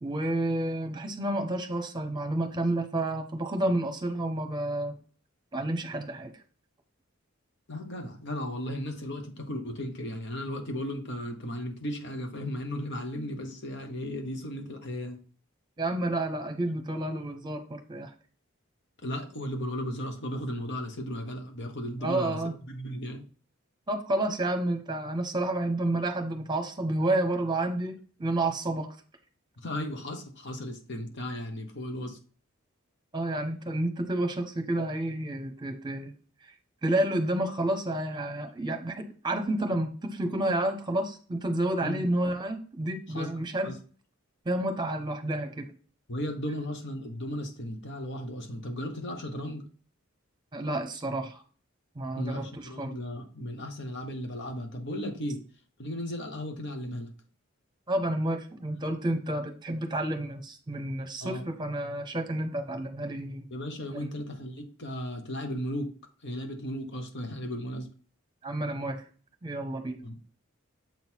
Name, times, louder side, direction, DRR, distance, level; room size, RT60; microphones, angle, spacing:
voice 1, 0.0-5.0 5.5-6.3 15.8-18.1 22.0-22.5 23.9-28.9 33.1-36.1 36.8-43.7 44.4-45.7 50.5-51.4 51.9-52.9 57.9-63.5 64.0-64.1 68.4-69.0 69.4-70.0, right 1 dB, 20° right, 6 dB, 1.0 m, -30 dB
voice 2, 7.7-15.2 19.0-22.4 22.7-23.2 29.6-32.2 41.8-42.0 43.1-43.3 43.6-43.8 46.1-49.6 52.1-55.4 55.8-57.1 61.2-61.4 63.5-65.9 66.2-67.9 70.0-70.3, equal, 60° left, 4 dB, 1.3 m, -35 dB
7.4 x 3.9 x 4.6 m, 0.39 s
head